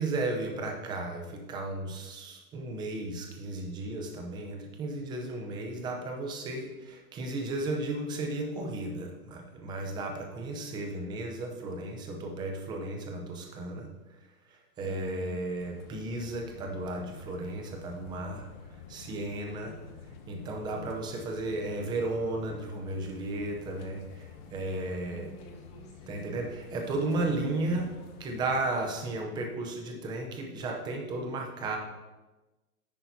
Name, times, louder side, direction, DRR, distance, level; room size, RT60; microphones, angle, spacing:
voice 1, 0.0-13.9 14.5-19.8 20.3-25.3 26.1-27.9 28.2-31.8, right 2 dB, 10° right, 2 dB, 0.7 m, -34 dB
voice 2, 14.8-15.5 19.6-20.2 24.7-26.4, right 2 dB, 15° left, -4 dB, 2.2 m, -51 dB
sound 1, 15.6-28.7, left 6 dB, 30° left, 0.9 m, -50 dB
10.5 x 8.4 x 2.8 m, 1.1 s
hypercardioid pair, 155°, 44 cm